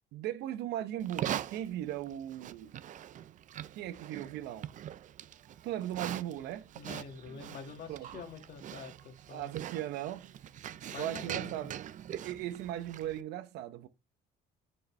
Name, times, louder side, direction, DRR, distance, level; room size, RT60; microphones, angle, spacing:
voice 1, 0.1-2.7 3.7-4.7 5.6-6.7 7.9-8.2 9.3-10.3 10.9-11.8 12.1-13.9, right 12 dB, 85° right, 0.8 m, -38 dB
Livestock farm animals working animals, 1.0-13.2, right 11 dB, 50° right, 0.5 m, -42 dB
voice 2, 6.8-9.6 10.9-11.7, left 6 dB, 65° left, 1.9 m, -46 dB
7.0 x 6.6 x 3.2 m
cardioid pair, 110°, 17 cm